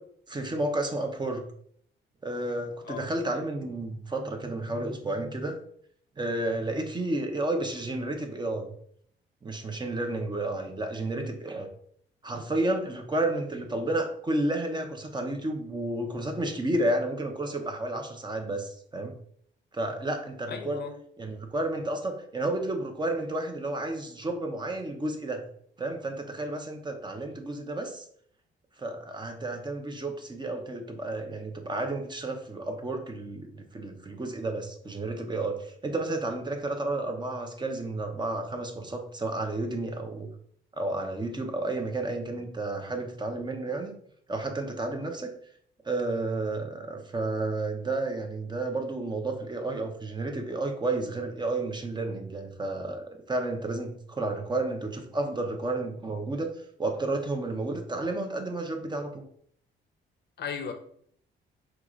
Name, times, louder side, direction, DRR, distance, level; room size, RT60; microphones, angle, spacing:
voice 1, 0.3-1.4 2.2-5.6 6.2-8.7 9.4-11.7 12.2-19.1 19.7-20.8 21.2-25.4 25.8-28.1 28.8-40.3 40.8-43.9 44.3-45.3 45.8-56.5 56.8-59.2, right 2 dB, 20° right, 4 dB, 0.8 m, -31 dB
voice 2, 20.5-20.9 60.4-60.7, left 6 dB, 55° left, 7 dB, 0.7 m, -36 dB
4.7 x 2.5 x 3.9 m, 0.63 s
cardioid pair, 90°, 20 cm